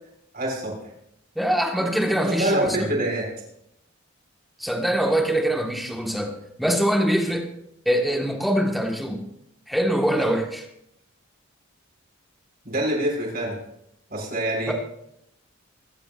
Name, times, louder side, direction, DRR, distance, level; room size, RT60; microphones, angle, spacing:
voice 1, 0.3-0.8 2.3-3.3 12.6-13.6 14.1-14.7, right 1 dB, 45° right, -2 dB, 6.1 m, -25 dB
voice 2, 1.3-2.9 4.6-7.5 7.8-9.3 9.7-10.6 14.7-14.8, equal, ahead, 1 dB, 1.6 m, -23 dB
24.5 x 12.5 x 2.6 m, 0.78 s
head